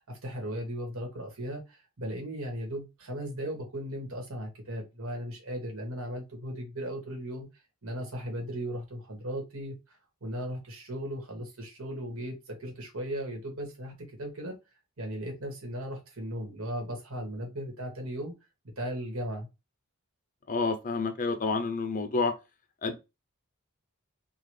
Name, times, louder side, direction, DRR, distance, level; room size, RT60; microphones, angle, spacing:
voice 1, 0.1-7.5 7.8-14.6 15.0-18.3 18.8-19.5, equal, 70° right, 1.7 m, -37 dB
voice 2, 20.5-22.3 22.8-23.0, left 3 dB, 35° left, 0.5 m, -29 dB
3.9 x 2.3 x 3.2 m
head